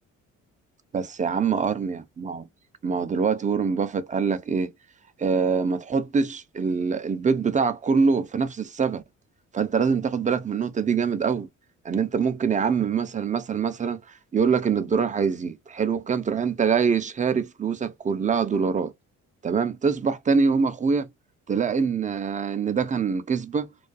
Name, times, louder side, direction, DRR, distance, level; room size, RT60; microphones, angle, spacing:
voice 1, 0.9-2.4 2.8-4.7 5.2-9.0 9.5-11.5 11.8-14.0 14.3-18.9 19.4-21.1 21.5-23.7, right 5 dB, 25° right, 0.4 m, -24 dB
2.3 x 2.2 x 2.4 m
cardioid pair, 90°, 30 cm